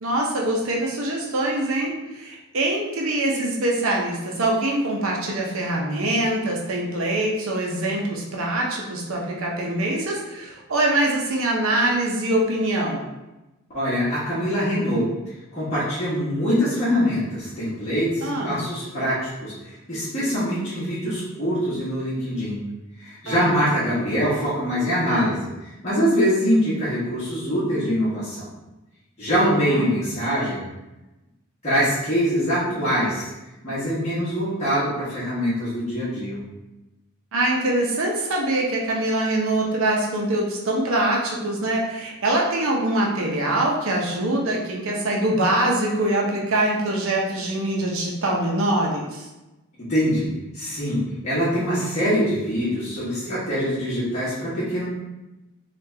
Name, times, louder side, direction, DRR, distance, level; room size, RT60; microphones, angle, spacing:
voice 1, 0.0-13.1 18.2-18.6 23.3-23.5 29.3-29.8 37.3-49.2, right 1 dB, 65° right, -1 dB, 0.6 m, -24 dB
voice 2, 13.7-15.1 15.5-22.6 23.0-25.5 25.8-28.5 29.2-30.6 31.6-33.3 33.6-36.4 49.9-54.9, equal, 30° left, -10 dB, 1.1 m, -23 dB
3.3 x 2.4 x 3.2 m, 1.0 s
head